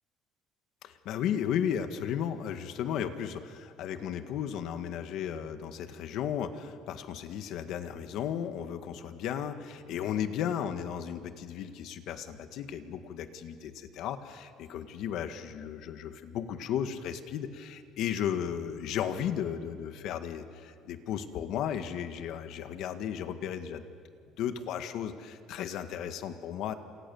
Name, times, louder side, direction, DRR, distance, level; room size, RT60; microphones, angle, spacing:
voice 1, 1.1-23.8 24.4-26.7, left 9 dB, 55° left, 9 dB, 1.7 m, -34 dB
29.5 x 28.0 x 7.2 m, 2.2 s
cardioid pair, 170°, 0 cm